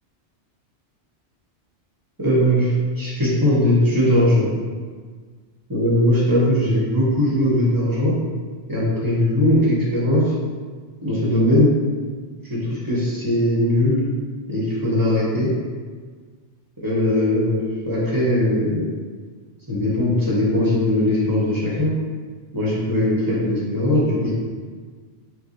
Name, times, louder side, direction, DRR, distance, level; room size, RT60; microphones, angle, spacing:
voice 1, 2.2-4.5 5.7-8.1 8.7-10.3 11.0-11.7 12.5-14.0 14.5-15.5 16.8-18.9 19.7-21.9 22.5-24.3, left 1 dB, 20° right, -8 dB, 1.0 m, -19 dB
5.6 x 2.3 x 2.7 m, 1.5 s
omnidirectional pair, 1.2 m